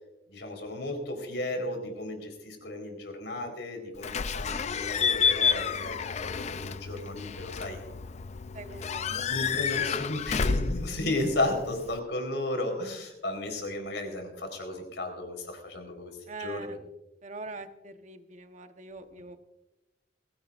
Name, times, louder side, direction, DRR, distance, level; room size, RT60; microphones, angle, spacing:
voice 1, 0.3-6.0 6.2-7.8 8.7-16.8, left 1 dB, 80° left, 4 dB, 4.2 m, -34 dB
Slam / Squeak / Alarm, 4.0-12.0, left 6 dB, 40° left, 0.4 m, -30 dB
voice 2, 8.5-9.2 16.3-16.8 17.2-19.4, right 3 dB, 40° right, 7 dB, 1.1 m, -43 dB
22.0 x 16.5 x 2.5 m, 0.96 s
head